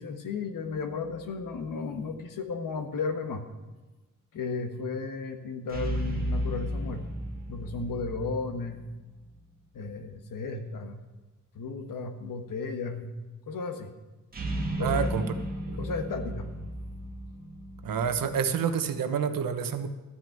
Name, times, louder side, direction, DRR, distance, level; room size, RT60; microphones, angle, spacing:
voice 1, 0.0-3.4 4.3-7.2 7.5-8.9 9.7-11.0 11.5-13.1 13.5-13.9 14.8-15.1 15.8-16.5, left 4 dB, 70° left, 7 dB, 1.4 m, -34 dB
sound 1, 0.6-1.6 5.7-9.3 14.3-18.4, right 1 dB, 25° right, 1.7 m, -34 dB
voice 2, 14.8-15.2 15.7-15.8 17.8-19.9, right 7 dB, 80° right, 9 dB, 1.0 m, -28 dB
13.0 x 6.2 x 8.9 m, 1.2 s
wide cardioid pair, 150°, 33 cm